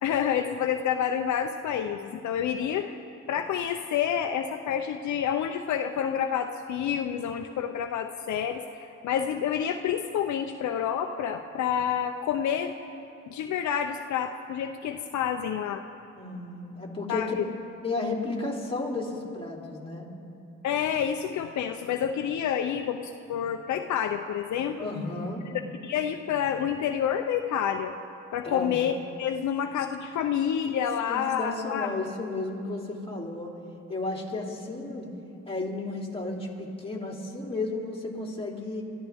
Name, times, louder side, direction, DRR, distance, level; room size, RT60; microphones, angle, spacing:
voice 1, 0.0-2.9 3.3-12.7 13.3-15.8 17.1-17.4 20.6-24.9 25.8-27.9 28.3-28.9 29.2-31.9, left 8 dB, 70° left, 6 dB, 0.7 m, -28 dB
voice 2, 16.2-17.3 17.8-20.1 24.8-25.4 28.4-28.8 31.1-33.6 33.9-35.1 35.5-38.8, left 2 dB, 20° left, -2 dB, 3.0 m, -33 dB
25.5 x 13.5 x 3.5 m, 2.8 s
cardioid pair, 90°, 30 cm